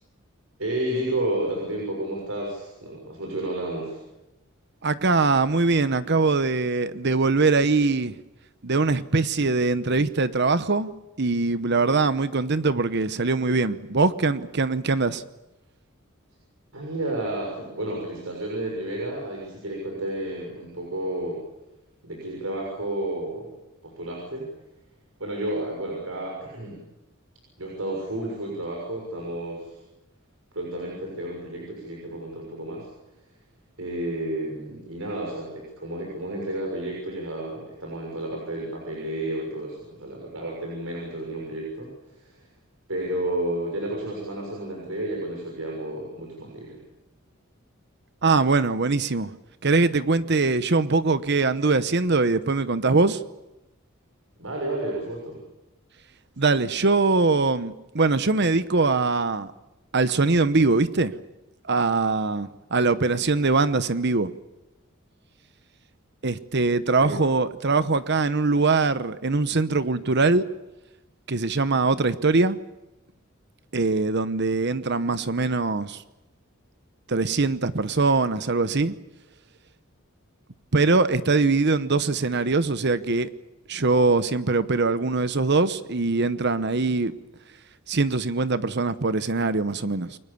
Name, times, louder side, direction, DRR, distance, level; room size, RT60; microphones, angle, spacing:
voice 1, 0.6-4.0 16.7-21.4 22.0-23.5 23.8-24.5 25.2-26.8 27.6-29.8 30.5-32.9 33.8-42.5 42.9-46.8 54.4-55.4 67.0-67.1, right 1 dB, 80° right, 6.6 m, -31 dB
voice 2, 4.8-8.1 8.6-10.9 11.2-15.2 48.2-49.3 49.6-53.2 56.4-59.5 59.9-61.1 61.7-64.3 66.2-70.4 71.3-72.6 73.7-76.0 77.1-78.9 80.7-83.3 83.7-87.1 87.9-90.2, right 3 dB, 55° right, 1.0 m, -22 dB
29.0 x 23.5 x 7.1 m
head